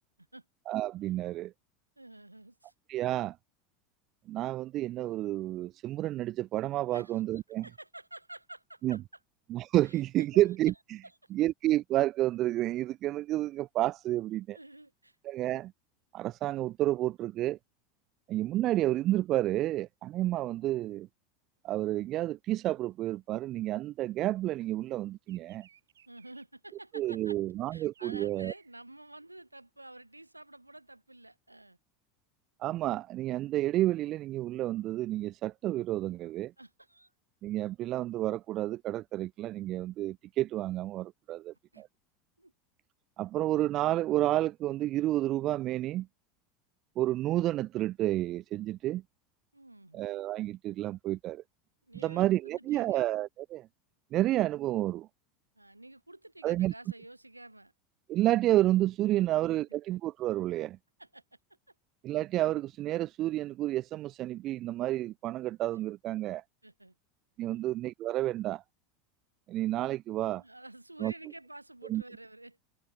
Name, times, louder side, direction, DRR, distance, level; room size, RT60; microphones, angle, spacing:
voice 1, 0.7-1.5 2.9-3.4 4.3-7.6 8.8-9.0 9.5-10.7 11.3-14.6 15.2-15.7 16.1-17.6 18.3-21.1 21.6-25.7 26.9-28.5 32.6-36.5 37.4-41.9 43.2-46.1 47.0-49.0 49.9-51.4 52.0-53.7 54.1-55.1 56.4-56.7 58.1-60.8 62.0-66.4 67.4-68.6 69.5-70.4 71.0-71.1 71.9-72.0, right 14 dB, 40° right, 0.5 m, -30 dB
voice 2, 2.0-2.7 6.9-9.0 9.8-10.0 11.0-11.3 14.5-15.2 26.1-27.4 27.7-31.8 36.6-37.1 41.7-41.8 42.4-42.5 49.5-50.1 51.8-53.1 55.6-57.7 59.1-59.8 61.0-61.2 66.6-67.0 67.5-67.7 70.3-72.6, right 1 dB, 90° right, 1.9 m, -50 dB
Bird vocalization bird call bird song, 21.6-24.5 24.8-29.5, right 9 dB, 70° right, 5.1 m, -66 dB
figure-of-eight pair, 80°, 0 cm